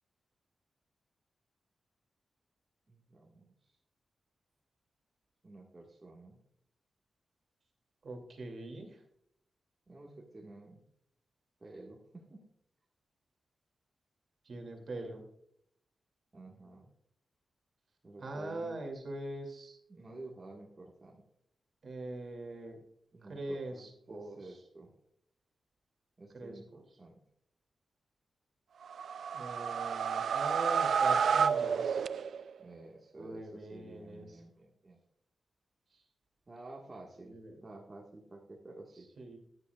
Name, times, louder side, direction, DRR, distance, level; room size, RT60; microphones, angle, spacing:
voice 1, 2.9-3.5 5.4-6.4 9.9-10.8 11.6-12.4 16.3-16.9 18.0-18.8 19.9-21.2 23.1-24.9 26.2-27.1 32.6-35.0 36.5-39.1, right 2 dB, 25° right, -3 dB, 1.5 m, -51 dB
voice 2, 8.0-9.0 14.4-15.2 18.2-19.8 21.8-22.8 23.3-24.4 26.3-26.6 29.3-32.0 33.2-34.4 37.2-37.6 39.2-39.4, right 2 dB, 50° right, 2 dB, 2.4 m, -42 dB
sound 1, 28.8-32.6, right 6 dB, 75° right, 0.4 m, -30 dB
15.5 x 10.0 x 2.3 m, 0.73 s
wide cardioid pair, 175°, 0 cm